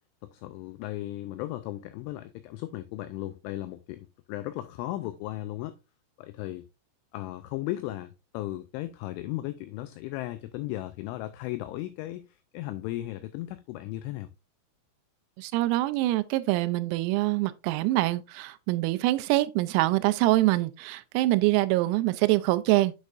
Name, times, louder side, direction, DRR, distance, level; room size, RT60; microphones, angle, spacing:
voice 1, 0.2-5.8 6.2-6.7 7.1-14.3, left 15 dB, 90° left, 2.7 m, -36 dB
voice 2, 15.4-22.9, right 18 dB, 90° right, 3.3 m, -25 dB
8.1 x 6.5 x 2.5 m
omnidirectional pair, 6.0 m